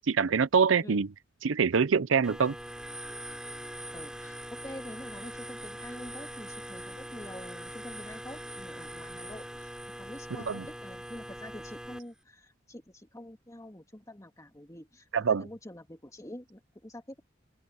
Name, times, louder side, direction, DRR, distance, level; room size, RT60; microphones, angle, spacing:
voice 1, 0.1-1.1 1.4-2.5 10.3-10.7 15.1-15.5, right 6 dB, 80° right, 0.6 m, -25 dB
sound 1, 2.2-12.0, right 1 dB, 5° right, 3.2 m, -42 dB
voice 2, 3.9-9.7 10.0-15.1 15.4-17.2, left 1 dB, 15° left, 2.4 m, -46 dB
head